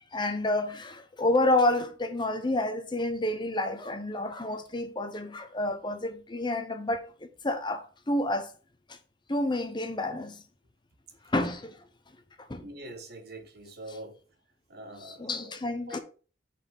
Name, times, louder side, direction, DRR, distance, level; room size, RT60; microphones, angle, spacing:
voice 1, 0.1-7.1 7.4-8.5 8.9-9.0 9.3-10.4 11.3-11.8 12.5-12.6 15.0-16.0, left 2 dB, 25° left, 0.8 m, -29 dB
voice 2, 12.6-14.2 14.7-15.6 15.9-16.0, right 1 dB, 60° right, 1.5 m, -44 dB
5.7 x 4.3 x 5.4 m
head